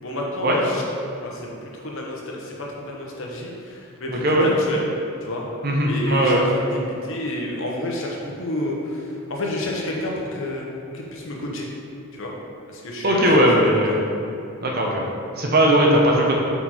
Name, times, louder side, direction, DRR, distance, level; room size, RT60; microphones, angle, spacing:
voice 1, 0.0-0.8 1.2-4.8 5.2-5.5 5.9-10.7 10.9-11.7 12.1-12.3 12.7-14.0, left 1 dB, 60° left, -2 dB, 1.0 m, -29 dB
voice 2, 4.1-4.5 5.6-6.4 13.0-14.0 14.6-15.1 15.4-16.4, right 1 dB, 45° right, -1 dB, 0.9 m, -18 dB
5.6 x 4.6 x 4.3 m, 2.7 s
head